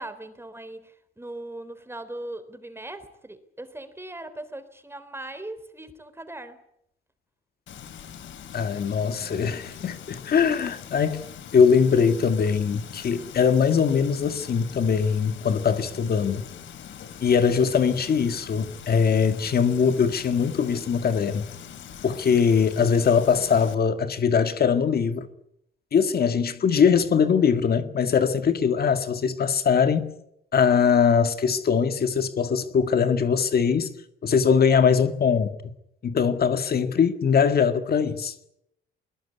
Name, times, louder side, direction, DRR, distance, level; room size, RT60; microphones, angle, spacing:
voice 1, 0.0-6.6, right 1 dB, 10° right, 3.5 m, -39 dB
Frying (food), 7.7-23.8, left 8 dB, 70° left, 3.0 m, -43 dB
voice 2, 8.5-11.2 11.5-16.4 17.2-21.5 22.0-25.3 25.9-30.1 30.5-33.9 34.2-35.6 36.0-38.3, left 6 dB, 50° left, 1.9 m, -21 dB
21.0 x 20.5 x 9.9 m
cardioid pair, 90°, 20 cm